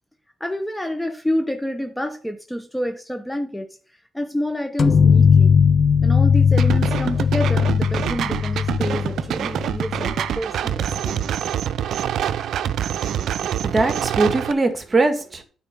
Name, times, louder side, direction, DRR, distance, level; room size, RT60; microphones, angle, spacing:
voice 1, 0.4-3.8 4.1-5.5 6.0-11.2, equal, 5° left, 1.0 m, -28 dB
sound 1, 4.8-10.3, left 6 dB, 45° left, 0.4 m, -18 dB
sound 2, 6.6-14.5, right 10 dB, 70° right, 0.5 m, -26 dB
voice 2, 13.2-15.4, right 3 dB, 30° right, 1.8 m, -22 dB
9.0 x 4.6 x 6.9 m
cardioid pair, 90°, 0 cm